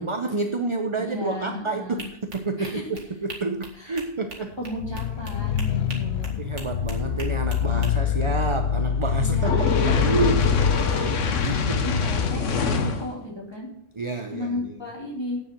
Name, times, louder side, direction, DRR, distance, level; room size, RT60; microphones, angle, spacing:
voice 1, 0.0-2.1 2.3-4.5 6.4-10.6 11.4-11.9 14.0-14.7, right 3 dB, 30° right, 6 dB, 0.7 m, -29 dB
voice 2, 1.0-2.1 2.6-2.9 3.7-4.0 4.6-6.4 9.2-13.7 14.3-15.4, left 1 dB, 20° left, -2 dB, 3.1 m, -35 dB
sound 1, 2.0-7.9, right 3 dB, 75° right, 2.2 m, -42 dB
sound 2, 4.7-10.8, left 8 dB, 60° left, 0.9 m, -25 dB
Fire, 9.4-13.1, left 5 dB, 90° left, 1.4 m, -24 dB
8.7 x 7.1 x 7.6 m, 0.73 s
omnidirectional pair, 1.2 m